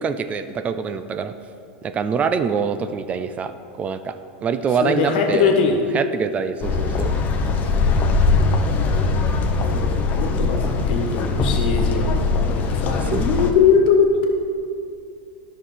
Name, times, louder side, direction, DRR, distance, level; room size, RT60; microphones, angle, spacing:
voice 1, 0.0-1.3 1.8-5.5 5.9-7.1 13.1-13.3, right 6 dB, 25° right, 10 dB, 0.4 m, -25 dB
voice 2, 4.8-5.8 8.4-8.9 9.6-14.3, left 5 dB, 70° left, 2 dB, 1.4 m, -21 dB
sound 1, 6.6-13.5, left 3 dB, 35° left, 0.9 m, -21 dB
11.0 x 6.5 x 3.9 m, 2.4 s
hypercardioid pair, 115°, 5 cm